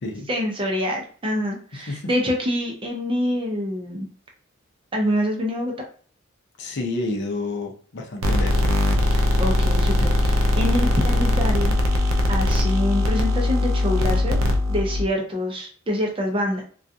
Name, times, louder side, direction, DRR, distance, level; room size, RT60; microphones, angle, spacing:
voice 1, 0.3-4.1 4.9-5.7 9.1-11.7 12.3-14.4 14.7-16.6, left 1 dB, 25° right, 0 dB, 0.6 m, -26 dB
voice 2, 6.6-8.7, left 2 dB, 60° left, 2 dB, 0.6 m, -29 dB
sound 1, 8.2-15.1, left 1 dB, 75° right, 0.4 m, -20 dB
2.4 x 2.2 x 2.6 m, 0.43 s
head